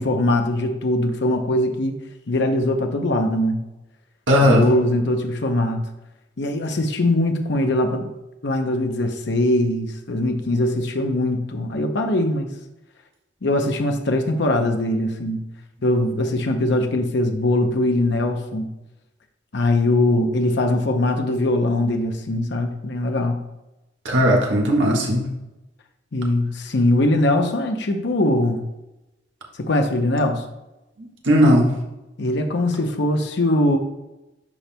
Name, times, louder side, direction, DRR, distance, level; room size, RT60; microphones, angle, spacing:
voice 1, 0.0-1.9 2.3-3.6 4.4-5.8 6.4-8.1 8.4-12.5 13.4-15.4 15.8-18.7 19.5-23.4 26.1-28.6 29.6-30.4 32.2-33.8, left 1 dB, 65° left, 5 dB, 0.7 m, -21 dB
voice 2, 4.3-4.6 24.0-25.2 31.2-31.7, equal, 75° right, 0 dB, 1.5 m, -16 dB
12.0 x 4.4 x 2.2 m, 0.98 s
head